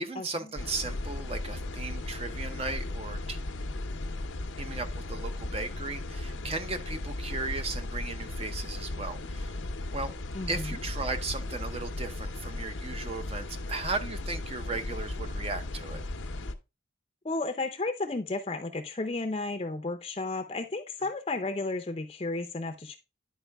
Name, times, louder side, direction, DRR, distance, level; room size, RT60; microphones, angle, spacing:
voice 1, 0.0-3.4 4.6-9.6 9.9-10.1 10.5-16.0, right 3 dB, 30° right, 0.7 m, -36 dB
sound 1, 0.6-16.5, left 2 dB, 90° left, 0.7 m, -36 dB
voice 2, 10.3-10.8 17.2-23.0, left 3 dB, 30° left, 0.6 m, -33 dB
10.5 x 4.7 x 3.4 m
head